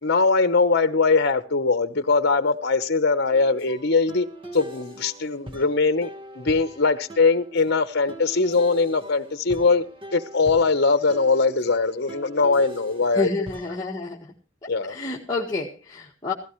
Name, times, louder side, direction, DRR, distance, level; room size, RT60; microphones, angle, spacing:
voice 1, 0.0-9.8 10.1-13.3 14.7-15.0, left 4 dB, 55° left, 1.0 m, -21 dB
sound 1, 3.3-13.9, right 1 dB, 25° right, 1.5 m, -42 dB
voice 2, 13.1-14.3 14.6-16.3, left 3 dB, 20° left, 1.7 m, -29 dB
16.0 x 16.0 x 3.1 m
head